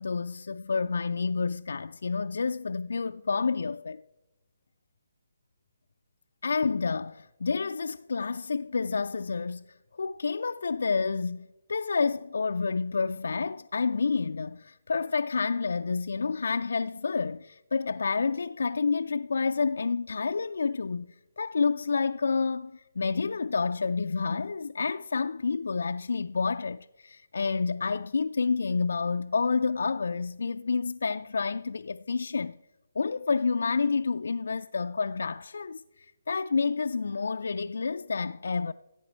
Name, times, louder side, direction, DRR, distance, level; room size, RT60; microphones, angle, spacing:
voice 1, 0.0-4.0 6.4-32.6 33.0-38.7, left 4 dB, 65° left, 0.3 m, -29 dB
15.5 x 8.2 x 4.6 m
figure-of-eight pair, 140°, 0 cm